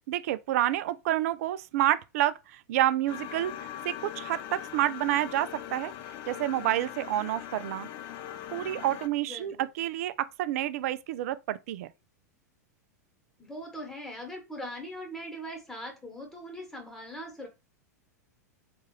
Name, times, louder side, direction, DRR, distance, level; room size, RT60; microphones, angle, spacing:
voice 1, 0.1-5.9 6.3-7.9 8.5-11.9, right 13 dB, 60° right, 0.3 m, -29 dB
sound 1, 3.1-9.1, left 11 dB, 45° left, 0.4 m, -41 dB
voice 2, 9.2-9.7 13.4-17.5, equal, 5° left, 1.3 m, -41 dB
3.5 x 2.4 x 3.0 m
hypercardioid pair, 95°, 9 cm